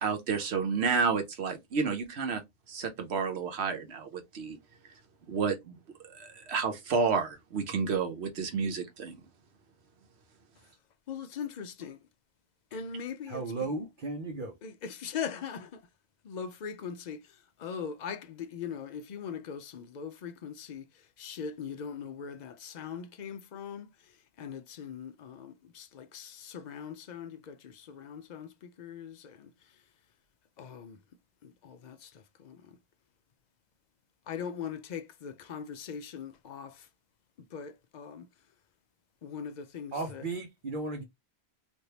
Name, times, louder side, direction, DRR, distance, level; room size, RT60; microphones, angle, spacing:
voice 1, 0.0-2.4 2.7-4.6 5.3-5.8 6.1-9.2, right 5 dB, 80° right, 1.1 m, -30 dB
voice 2, 11.1-12.0 12.7-13.7 14.6-15.8 16.2-17.2 17.6-20.9 21.2-23.9 24.4-29.5 30.6-31.0 31.4-32.8 34.3-36.9 37.5-38.3 39.2-40.2, left 7 dB, 55° left, 0.5 m, -40 dB
voice 3, 13.3-14.6 39.9-41.0, right 3 dB, 55° right, 0.9 m, -35 dB
3.3 x 2.6 x 2.8 m
omnidirectional pair, 1.1 m